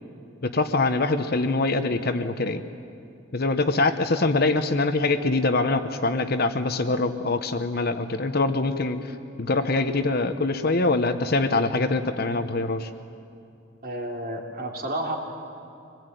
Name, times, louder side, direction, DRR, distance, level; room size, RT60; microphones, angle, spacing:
voice 1, 0.4-2.6 3.3-9.0 9.4-12.9, left 3 dB, 50° left, 9 dB, 1.0 m, -24 dB
voice 2, 13.8-15.2, right 1 dB, 45° right, 0 dB, 3.0 m, -31 dB
25.0 x 20.0 x 9.2 m, 2.6 s
head